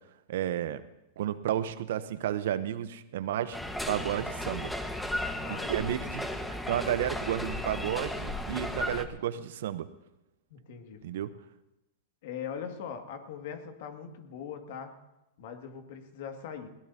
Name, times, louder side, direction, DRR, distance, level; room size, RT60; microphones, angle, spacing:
voice 1, 0.3-0.8 1.2-3.6 3.9-4.7 5.5-6.3 6.7-9.9 11.0-11.3, right 11 dB, 70° right, 14 dB, 0.8 m, -32 dB
sound 1, 3.5-9.1, left 1 dB, 5° left, 1.4 m, -35 dB
voice 2, 5.3-6.1 10.5-11.0 12.2-14.9 15.4-16.7, left 7 dB, 65° left, 5 dB, 2.1 m, -41 dB
20.5 x 18.0 x 2.8 m, 0.96 s
hypercardioid pair, 105°, 0 cm